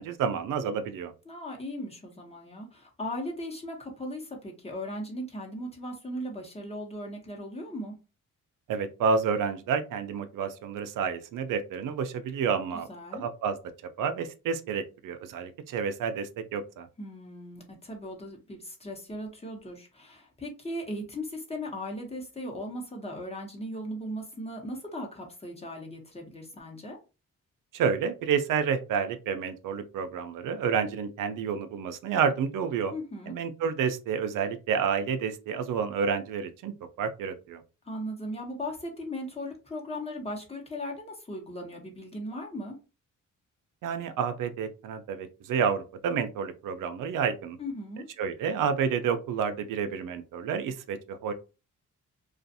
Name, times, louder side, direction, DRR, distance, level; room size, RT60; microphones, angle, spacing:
voice 1, 0.0-1.1 8.7-12.9 13.1-13.6 14.0-16.9 27.7-32.9 33.3-36.7 37.0-37.6 43.8-47.6 48.2-51.3, right 6 dB, 90° right, 0.5 m, -29 dB
voice 2, 1.3-7.9 12.9-13.2 17.0-27.0 32.9-33.4 37.8-42.8 47.6-48.1, left 1 dB, 20° left, 0.9 m, -38 dB
2.5 x 2.3 x 2.6 m
cardioid pair, 100°, 31 cm